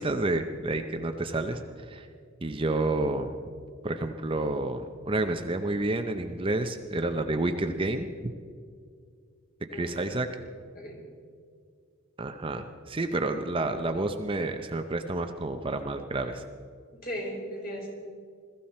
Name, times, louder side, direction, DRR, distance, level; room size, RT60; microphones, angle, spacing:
voice 1, 0.0-2.1 2.4-3.4 3.8-8.3 9.7-10.3 12.2-16.4, right 2 dB, 25° right, 7 dB, 0.6 m, -30 dB
voice 2, 9.7-10.0 10.7-11.0 16.9-17.9, equal, 45° left, -2 dB, 4.6 m, -37 dB
21.5 x 14.0 x 4.3 m, 2.2 s
head